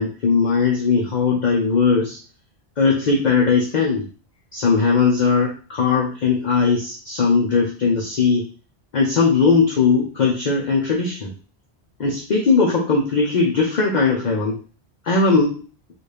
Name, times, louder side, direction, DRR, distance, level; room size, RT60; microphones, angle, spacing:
voice 1, 0.0-2.2 2.8-4.1 4.5-8.5 8.9-11.3 12.0-14.6 15.0-15.6, left 4 dB, 45° left, -2 dB, 0.8 m, -19 dB
4.0 x 2.6 x 3.3 m, 0.36 s
omnidirectional pair, 1.1 m